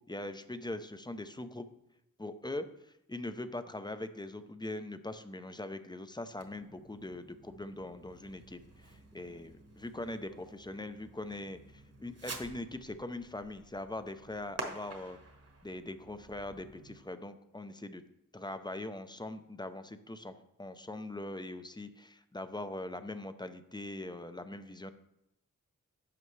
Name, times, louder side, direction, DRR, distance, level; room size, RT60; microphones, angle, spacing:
voice 1, 0.1-1.7 2.2-15.2 15.6-18.0 18.3-24.9, left 1 dB, 15° left, 10 dB, 0.6 m, -42 dB
Fireworks, 6.3-17.0, right 3 dB, 50° right, 1.3 m, -49 dB
11.0 x 5.6 x 3.2 m, 0.86 s
cardioid pair, 65°, 31 cm